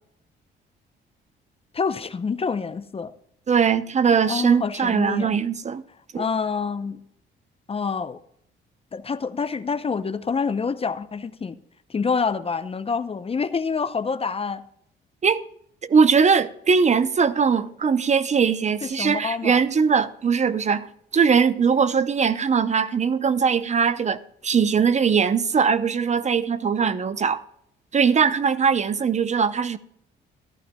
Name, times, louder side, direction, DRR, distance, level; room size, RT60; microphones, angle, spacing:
voice 1, 1.7-3.1 4.2-5.3 6.1-7.0 7.7-8.2 8.9-11.6 11.9-14.6 18.8-19.6, left 5 dB, 30° left, 0.6 m, -27 dB
voice 2, 3.5-5.8 6.1-6.2 15.2-15.4 15.8-20.9 21.1-27.4 27.9-29.8, right 6 dB, 35° right, 0.6 m, -20 dB
14.0 x 11.5 x 2.2 m
cardioid pair, 90°, 20 cm